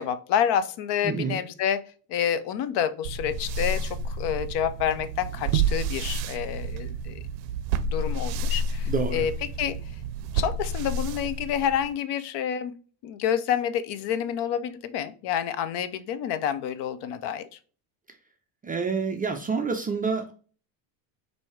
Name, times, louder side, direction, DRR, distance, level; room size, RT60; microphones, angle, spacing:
voice 1, 0.0-1.8 2.1-7.2 7.9-9.8 10.3-12.7 13.0-17.5, left 9 dB, 55° left, 12 dB, 0.6 m, -28 dB
voice 2, 1.0-1.4 8.9-9.2 18.6-20.3, right 5 dB, 20° right, 4 dB, 0.4 m, -28 dB
sound 1, 3.0-12.0, right 3 dB, 80° right, 0.5 m, -30 dB
4.4 x 2.7 x 3.1 m, 0.39 s
supercardioid pair, 90°, 49 cm